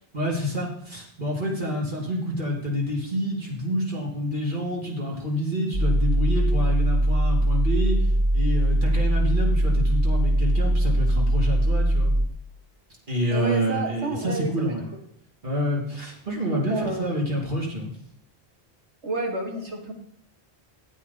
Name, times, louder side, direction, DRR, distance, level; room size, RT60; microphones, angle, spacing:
voice 1, 0.1-8.0 8.3-12.1 13.1-14.8 15.4-17.9, equal, 50° right, -3 dB, 2.8 m, -28 dB
sound 1, 5.7-12.3, right 1 dB, 30° right, 0.7 m, -21 dB
voice 2, 13.3-14.5 16.5-17.1 19.0-19.9, right 2 dB, 85° right, 3 dB, 2.0 m, -29 dB
13.5 x 8.5 x 4.1 m, 0.70 s
omnidirectional pair, 1.1 m